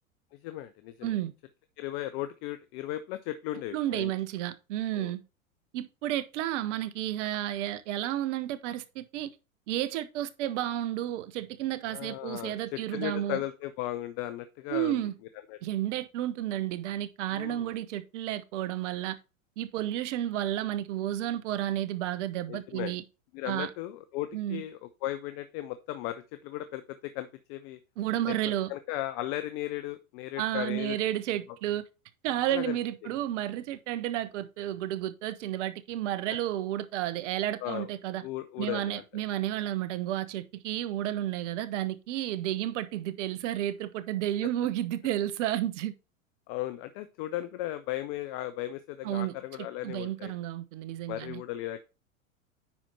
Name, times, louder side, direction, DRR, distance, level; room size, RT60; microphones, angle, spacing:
voice 1, 0.4-1.2 1.8-4.1 4.9-5.1 11.9-15.0 15.5-15.6 17.3-17.7 22.5-22.9 23.3-27.8 28.3-28.4 28.7-31.0 32.5-32.8 33.0-33.1 37.6-37.9 38.2-39.0 46.5-50.3 51.1-51.8, left 14 dB, 45° left, 0.9 m, -36 dB
voice 2, 1.0-1.3 3.7-5.2 5.7-9.3 9.7-13.4 14.7-15.1 15.6-19.2 19.6-23.0 23.5-23.7 24.3-24.6 28.0-28.7 30.4-31.9 32.2-38.2 38.6-45.9 49.0-51.4, right 13 dB, 60° right, 1.1 m, -32 dB
10.0 x 4.5 x 4.1 m
hypercardioid pair, 100°, 40 cm